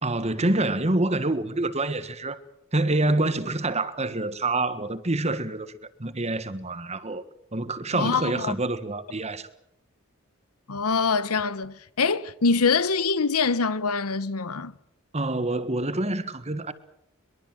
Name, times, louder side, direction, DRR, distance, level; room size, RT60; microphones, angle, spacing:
voice 1, 0.0-2.4 2.7-5.7 6.0-7.2 7.5-9.5 15.1-16.7, right 2 dB, 30° right, 1.6 m, -26 dB
voice 2, 7.9-8.5 10.7-14.7, left 4 dB, 85° left, 1.1 m, -24 dB
23.0 x 22.5 x 7.8 m
head